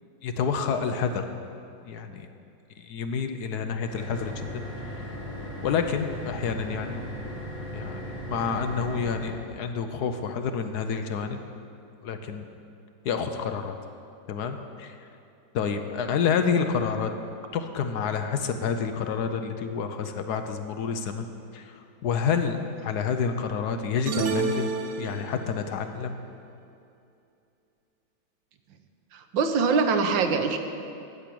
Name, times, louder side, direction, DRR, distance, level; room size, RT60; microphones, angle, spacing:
voice 1, 0.2-1.2 1.9-2.3 2.8-4.6 5.0-5.1 5.6-7.0 7.7-8.0 8.3-11.4 12.0-12.5 13.0-13.7 14.3-15.0 15.5-17.1 17.5-21.3 21.5-21.7 22.0-24.7 25.0-26.2, left 6 dB, 70° left, 7 dB, 1.2 m, -28 dB
sound 1, 3.8-9.3, equal, 30° right, 3.7 m, -37 dB
sound 2, 24.1-25.6, right 4 dB, 70° right, 1.4 m, -29 dB
voice 2, 29.1-30.6, right 5 dB, 85° right, 7 dB, 1.6 m, -23 dB
14.0 x 6.0 x 8.5 m, 2.5 s
omnidirectional pair, 2.0 m